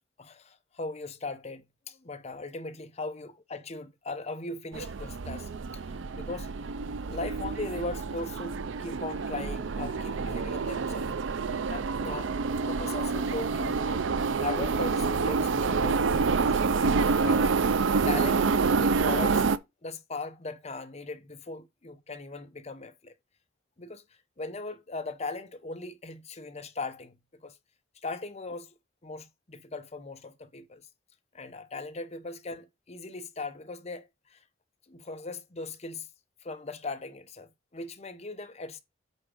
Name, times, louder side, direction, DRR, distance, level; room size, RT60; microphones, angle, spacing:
voice 1, 0.2-5.8 6.1-6.5 7.0-11.1 11.7-12.4 12.6-14.0 14.4-17.6 18.0-19.4 19.8-23.1 23.8-24.0 24.4-27.5 28.0-28.7 29.0-30.9 31.3-34.4 34.9-36.1 36.4-38.8, left 3 dB, 35° left, 0.9 m, -39 dB
sound 1, 4.7-19.6, right 4 dB, 85° right, 0.5 m, -27 dB
8.4 x 3.7 x 5.0 m
head